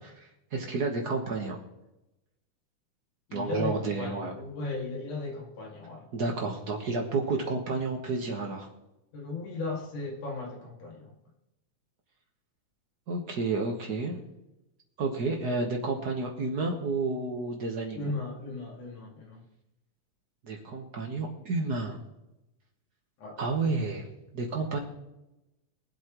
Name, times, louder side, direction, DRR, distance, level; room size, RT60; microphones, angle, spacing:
voice 1, 0.5-1.6 3.3-4.3 6.1-8.7 13.1-14.2 15.0-18.1 20.4-22.0 23.4-24.1 24.3-24.8, right 3 dB, 55° right, 1 dB, 1.1 m, -30 dB
voice 2, 3.3-6.3 9.1-11.1 17.9-19.4 23.2-23.4, left 3 dB, 70° left, -1 dB, 3.7 m, -36 dB
23.0 x 8.0 x 3.1 m, 0.94 s
omnidirectional pair, 3.6 m